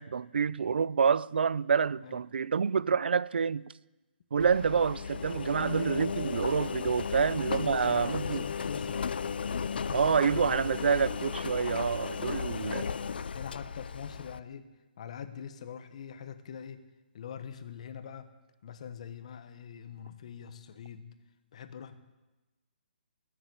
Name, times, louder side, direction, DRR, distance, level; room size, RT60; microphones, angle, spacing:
voice 1, 0.0-3.7 4.3-8.5 9.9-12.9, right 6 dB, 70° right, 0.5 m, -28 dB
Engine, 4.4-14.4, left 6 dB, 65° left, 0.5 m, -35 dB
voice 2, 7.1-9.2 9.7-10.2 10.5-10.6 11.6-13.1 13.3-14.7 15.0-16.8 17.1-18.3 18.6-21.1 21.5-21.9, left 8 dB, 40° left, 1.1 m, -44 dB
20.0 x 7.3 x 8.5 m
hypercardioid pair, 170°, 6 cm